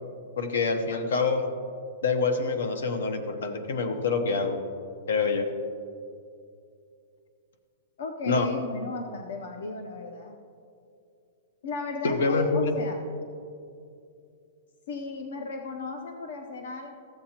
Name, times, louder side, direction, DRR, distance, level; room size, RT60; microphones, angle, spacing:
voice 1, 0.4-1.4 2.0-4.6 5.1-5.5 8.3-8.5 12.0-12.7, left 4 dB, 85° left, 7 dB, 1.0 m, -26 dB
voice 2, 8.0-10.4 11.6-13.0 14.9-16.9, left 3 dB, 65° left, 4 dB, 0.7 m, -35 dB
14.0 x 7.7 x 2.9 m, 2.5 s
supercardioid pair, 175°, 0 cm